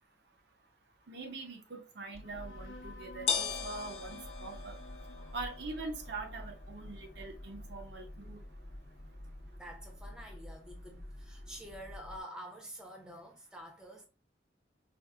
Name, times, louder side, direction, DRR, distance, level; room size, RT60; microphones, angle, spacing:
voice 1, 1.1-4.8 5.3-8.4, right 3 dB, 65° right, 0.7 m, -43 dB
sound 1, 2.1-12.2, left 5 dB, 35° left, 0.8 m, -42 dB
sound 2, 2.2-9.2, left 3 dB, 85° left, 0.7 m, -55 dB
voice 2, 9.6-14.0, equal, 5° right, 0.6 m, -48 dB
4.4 x 2.0 x 2.4 m
head